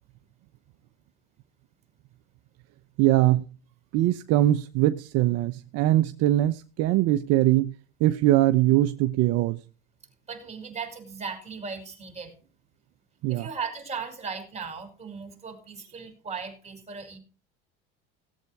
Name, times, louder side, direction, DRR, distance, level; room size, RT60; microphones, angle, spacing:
voice 1, 3.0-3.4 3.9-7.7 8.0-9.6 13.2-13.5, right 14 dB, 55° right, 0.8 m, -22 dB
voice 2, 10.3-12.3 13.3-17.2, right 5 dB, 20° right, 5.5 m, -37 dB
18.0 x 8.2 x 4.7 m
supercardioid pair, 110°, 30 cm